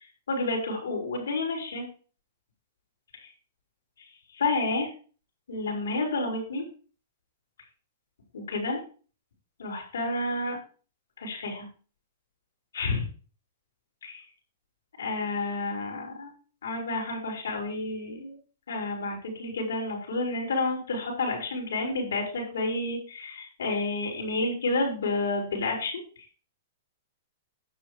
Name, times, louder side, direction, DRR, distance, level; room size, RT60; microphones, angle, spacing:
voice 1, 0.0-1.9 3.2-3.3 4.0-4.1 4.3-4.9 5.5-6.6 8.3-8.8 9.6-10.6 11.2-11.7 12.7-13.1 14.0-14.2 15.0-16.3 16.6-18.3 18.7-26.0, left 2 dB, 85° left, 1 dB, 5.0 m, -30 dB
10.0 x 6.8 x 5.0 m, 0.39 s
hypercardioid pair, 135°, 0 cm